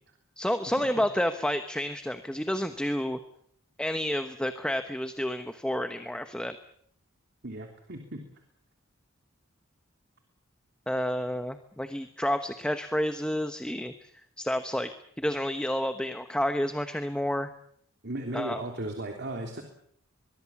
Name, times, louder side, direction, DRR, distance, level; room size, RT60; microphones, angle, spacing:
voice 1, 0.4-3.2 3.8-6.6 10.9-13.9 14.4-14.9 15.2-17.5 18.3-18.6, equal, 5° left, 8 dB, 1.1 m, -30 dB
voice 2, 7.4-8.2 18.0-19.6, right 1 dB, 55° right, 3 dB, 3.3 m, -36 dB
24.0 x 22.5 x 7.3 m, 0.66 s
head